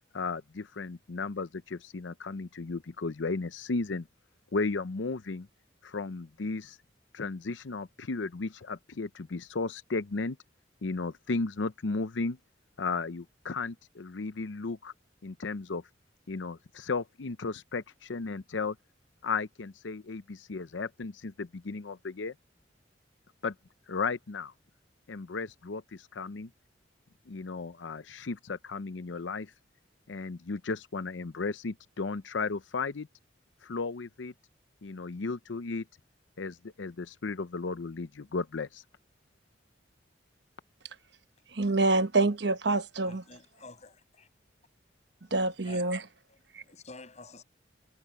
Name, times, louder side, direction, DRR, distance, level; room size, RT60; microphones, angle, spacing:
voice 1, 0.1-4.1 4.5-5.5 5.8-6.8 7.1-10.4 10.8-12.4 12.8-14.9 15.2-15.8 16.3-18.8 19.2-22.3 23.4-23.5 23.9-24.5 25.1-26.5 27.3-29.5 30.1-33.1 33.6-34.3 34.8-35.8 36.4-38.8, left 4 dB, 90° left, 0.7 m, -34 dB
voice 2, 41.5-43.2 45.3-46.0 46.5-46.6, right 3 dB, 65° right, 1.2 m, -26 dB
voice 3, 43.0-44.3 45.6-46.0 46.3-47.4, left 3 dB, 40° left, 7.4 m, -50 dB
head